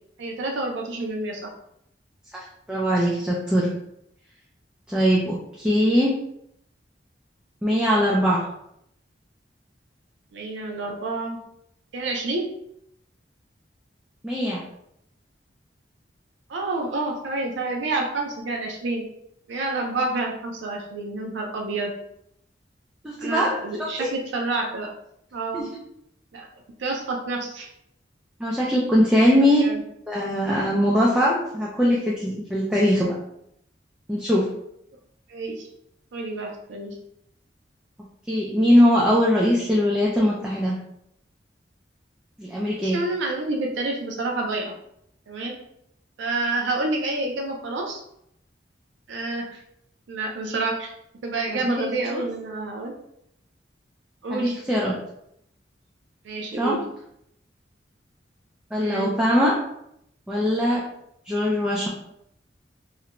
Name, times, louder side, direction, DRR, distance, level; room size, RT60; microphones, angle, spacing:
voice 1, 0.2-1.5 10.3-11.4 11.9-12.5 16.5-19.0 19.5-21.9 23.2-24.9 25.3-25.7 26.3-26.5 26.8-27.7 29.6-29.8 35.3-35.7 36.1-37.0 42.8-44.7 45.3-45.6 46.2-48.0 49.1-49.6 50.1-50.9 51.2-52.9 54.2-54.5 56.2-56.8 58.8-59.1, right 2 dB, 80° right, 1 dB, 0.4 m, -28 dB
voice 2, 2.3-3.7 4.9-6.1 7.6-8.4 14.2-14.6 23.0-23.5 24.0-24.1 25.5-25.7 28.4-29.6 30.1-33.1 34.1-34.5 38.3-40.8 42.4-43.0 51.5-51.6 52.1-52.2 54.3-55.0 56.6-56.8 58.7-59.6 60.3-60.8 61.3-61.9, equal, 5° right, -6 dB, 0.3 m, -21 dB
2.4 x 2.1 x 2.8 m, 0.75 s
head